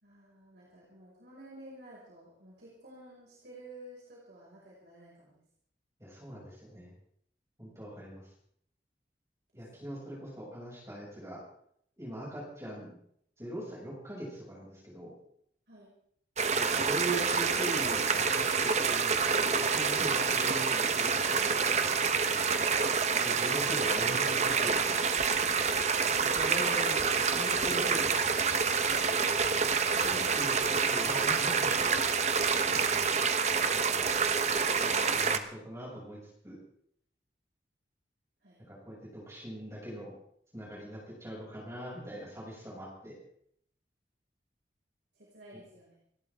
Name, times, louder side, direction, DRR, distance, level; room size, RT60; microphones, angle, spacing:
voice 1, 0.0-5.4 9.7-9.8 15.7-15.9 25.4-25.7 38.4-38.6 45.1-46.0, right 1 dB, 70° right, -6 dB, 6.0 m, -52 dB
voice 2, 6.0-6.9 7.6-8.3 9.5-11.4 12.0-13.0 13.4-15.1 16.5-21.9 23.2-24.8 26.2-28.5 29.9-32.0 33.7-34.1 34.8-36.6 38.7-40.1 40.5-43.1, right 1 dB, 15° right, -5 dB, 7.2 m, -41 dB
sound 1, 16.4-35.4, right 5 dB, 40° right, 1.1 m, -27 dB
30.0 x 12.5 x 3.7 m, 0.68 s
head